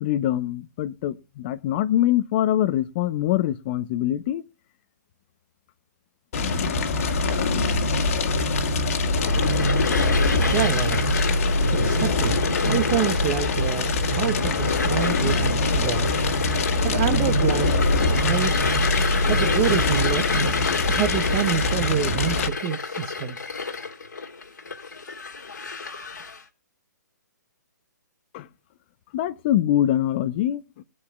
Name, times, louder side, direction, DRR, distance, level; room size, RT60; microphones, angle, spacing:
voice 1, 0.0-4.4 28.3-28.5 29.1-30.8, left 12 dB, 35° left, 0.7 m, -24 dB
Fire, 6.3-22.5, left 2 dB, 50° left, 1.9 m, -23 dB
sound 1, 9.1-26.4, left 4 dB, 75° left, 2.0 m, -30 dB
voice 2, 10.4-11.1 11.7-12.4 12.7-16.1 16.8-18.7 19.3-20.3 20.9-23.4, right 10 dB, 30° right, 0.9 m, -27 dB
21.5 x 8.7 x 2.4 m
figure-of-eight pair, 130°, 10 cm